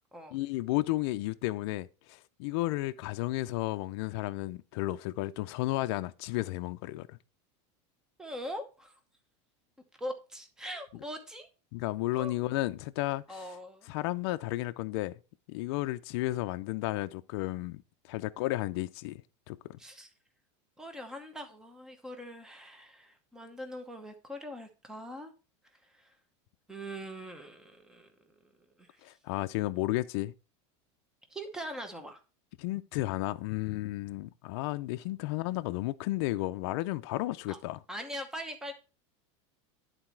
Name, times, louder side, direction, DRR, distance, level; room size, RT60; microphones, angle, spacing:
voice 1, 0.3-7.2 11.7-13.5 13.9-15.2 15.5-17.8 18.1-19.2 19.5-19.8 29.0-30.3 32.6-37.8, left 17 dB, 60° left, 0.4 m, -33 dB
voice 2, 8.2-9.0 10.0-11.5 12.1-12.3 13.3-13.9 19.8-20.1 20.8-25.3 25.8-26.1 26.7-28.1 28.8-29.0 31.3-32.2 37.5-37.6 37.9-38.7, equal, 5° right, 0.9 m, -42 dB
11.0 x 4.1 x 4.5 m
supercardioid pair, 165°, 16 cm